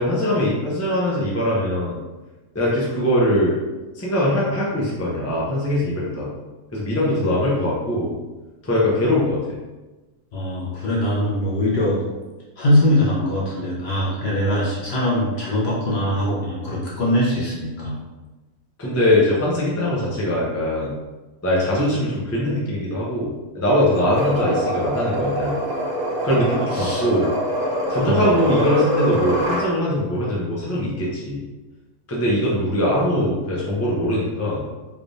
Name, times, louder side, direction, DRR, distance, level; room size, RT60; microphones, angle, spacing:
voice 1, 0.0-2.0 2.5-3.6 3.9-6.3 6.7-8.2 8.6-9.4 18.8-20.9 21.4-25.6 26.2-27.3 27.9-31.4 32.1-34.6, left 1 dB, 20° left, -6 dB, 0.4 m, -21 dB
voice 2, 10.3-12.0 12.6-18.0 26.7-27.0 28.0-28.3, left 1 dB, 50° left, -5 dB, 0.9 m, -22 dB
sound 1, 23.9-29.7, equal, 70° right, 1.2 m, -24 dB
3.3 x 3.3 x 2.6 m, 1.2 s
omnidirectional pair, 1.6 m